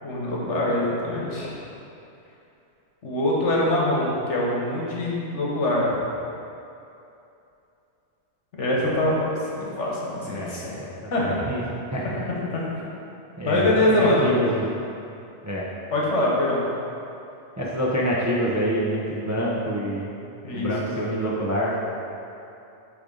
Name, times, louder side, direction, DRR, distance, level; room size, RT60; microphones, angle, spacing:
voice 1, 0.0-1.5 3.0-6.0 8.6-10.8 11.1-11.4 12.5-12.9 13.5-14.3 15.9-16.6 20.4-20.7, left 1 dB, 75° left, -4 dB, 1.4 m, -24 dB
voice 2, 10.2-11.6 11.9-12.2 13.4-14.7 15.4-15.7 17.6-20.2 20.5-21.8, equal, 20° right, -6 dB, 0.5 m, -26 dB
8.7 x 3.4 x 3.8 m, 2.7 s
omnidirectional pair, 1.2 m